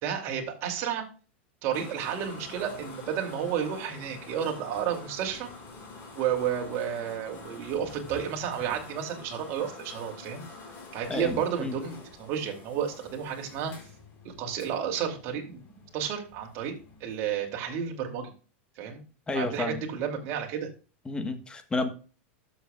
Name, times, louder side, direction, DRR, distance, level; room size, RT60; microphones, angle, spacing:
voice 1, 0.0-1.0 1.6-5.5 6.1-10.4 10.9-13.7 14.2-16.7 17.0-18.3 18.8-19.0 19.3-20.7, right 8 dB, 50° right, 2 dB, 2.8 m, -31 dB
sound 1, 1.7-17.3, left 3 dB, 35° left, 4.5 m, -47 dB
voice 2, 11.1-11.7 19.3-19.8 21.1-21.9, left 3 dB, 15° left, 8 dB, 1.3 m, -31 dB
12.5 x 7.2 x 2.4 m, 0.35 s
supercardioid pair, 120°, 7 cm